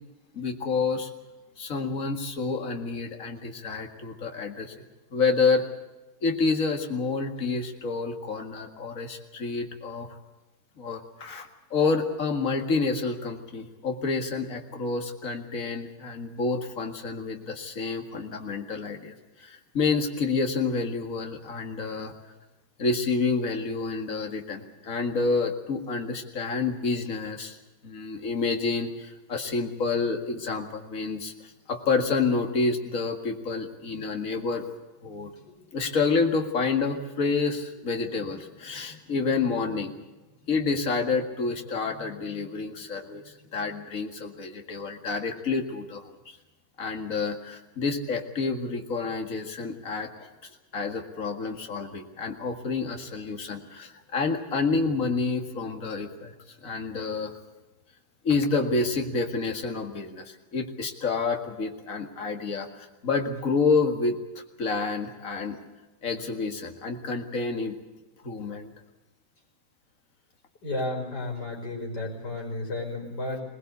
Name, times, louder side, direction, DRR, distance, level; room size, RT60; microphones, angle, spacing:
voice 1, 0.3-1.1 1.6-4.7 5.1-5.7 6.2-10.1 10.8-22.1 22.8-27.6 27.8-34.6 35.0-35.3 35.7-39.9 40.5-46.4 46.8-56.3 56.6-57.4 58.2-64.2 64.6-65.6 66.0-67.8 68.2-68.7, left 4 dB, 50° left, 4 dB, 2.3 m, -28 dB
voice 2, 70.6-73.4, left 2 dB, 70° left, 0 dB, 5.7 m, -32 dB
21.5 x 20.0 x 8.2 m, 1.1 s
omnidirectional pair, 1.9 m